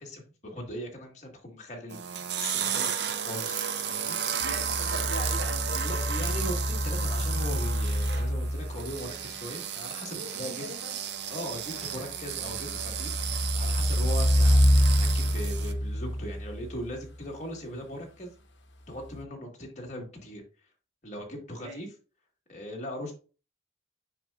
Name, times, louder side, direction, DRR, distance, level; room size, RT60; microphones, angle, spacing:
voice 1, 0.0-3.6 3.9-4.2 5.7-10.7 11.3-13.2 13.5-18.3 18.9-20.4 21.0-21.9 22.5-23.1, equal, 35° left, 1.7 m, -39 dB
sound 1, 1.9-15.7, right 8 dB, 60° right, 0.5 m, -33 dB
voice 2, 4.3-6.1 10.1-11.0 14.2-14.4 21.6-21.8, equal, 80° right, 1.8 m, -41 dB
sound 2, 4.4-9.1 12.4-17.0 19.1-19.2, equal, 70° left, 0.8 m, -27 dB
7.4 x 5.6 x 2.4 m
head